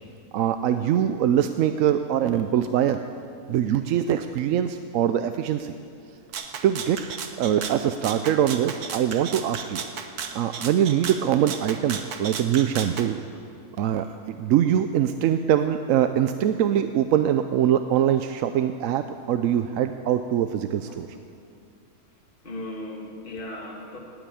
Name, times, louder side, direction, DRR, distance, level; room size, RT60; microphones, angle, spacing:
voice 1, 0.3-3.0 3.5-5.7 6.6-7.0 7.4-9.8 10.3-13.2 13.8-21.1, right 10 dB, 70° right, 9 dB, 0.9 m, -23 dB
Rattle (instrument), 6.3-13.1, right 6 dB, 90° right, 1.5 m, -35 dB
voice 2, 22.4-24.0, left 1 dB, 35° left, 0 dB, 2.1 m, -37 dB
18.5 x 8.9 x 8.5 m, 2.4 s
omnidirectional pair, 1.6 m